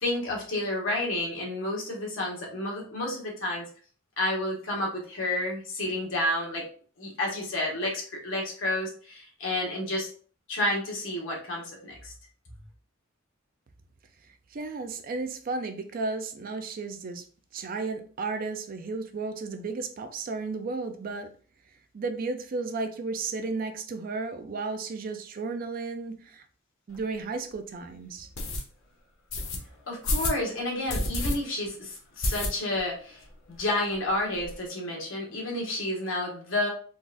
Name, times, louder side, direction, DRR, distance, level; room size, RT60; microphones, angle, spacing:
voice 1, 0.0-3.6 4.2-6.6 7.0-10.1 10.5-12.1 29.9-33.2 33.5-36.7, left 1 dB, 70° left, -1 dB, 1.2 m, -30 dB
voice 2, 14.5-17.2 17.5-21.3 21.9-26.4 26.9-28.3, right 3 dB, 45° right, 8 dB, 0.4 m, -33 dB
sound 1, 26.9-27.0 27.5-27.6 28.3-28.6 29.3-29.6 30.0-30.4 30.9-31.3 31.7-31.8 32.2-32.9 33.2-33.3 33.6-33.7 33.9-34.5, left 2 dB, 85° left, 0.8 m, -29 dB
3.8 x 2.5 x 2.4 m, 0.42 s
head